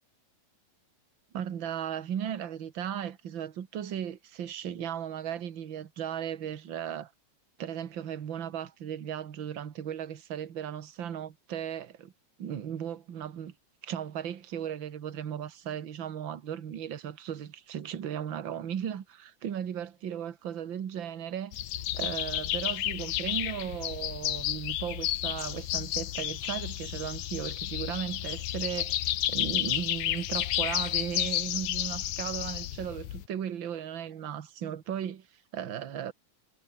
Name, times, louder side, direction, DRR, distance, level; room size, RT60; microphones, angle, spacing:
voice 1, 1.3-7.1 7.6-12.1 12.4-13.5 13.8-21.6 21.9-29.0 29.3-35.3 35.5-36.1, right 9 dB, 45° right, 1.8 m, -36 dB
sound 1, 21.5-33.2, left 13 dB, 70° left, 2.3 m, -32 dB
omnidirectional pair, 3.8 m